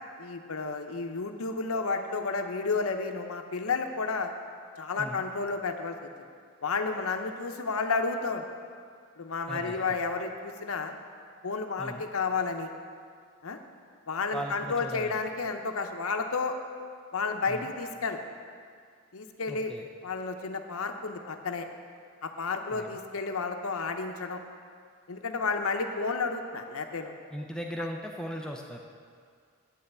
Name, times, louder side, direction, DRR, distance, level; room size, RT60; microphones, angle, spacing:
voice 1, 0.2-4.3 4.8-6.1 6.6-8.4 9.2-10.9 11.4-12.7 13.4-13.6 14.1-16.6 17.1-18.2 19.1-19.7 20.0-21.6 22.2-24.4 25.1-27.1, left 4 dB, 75° left, 6 dB, 0.7 m, -31 dB
voice 2, 9.5-10.0 11.8-12.0 14.3-15.2 17.5-17.7 19.5-19.9 22.7-23.0 27.3-28.8, equal, 5° left, 1 dB, 0.5 m, -38 dB
8.6 x 5.6 x 8.0 m, 2.2 s
head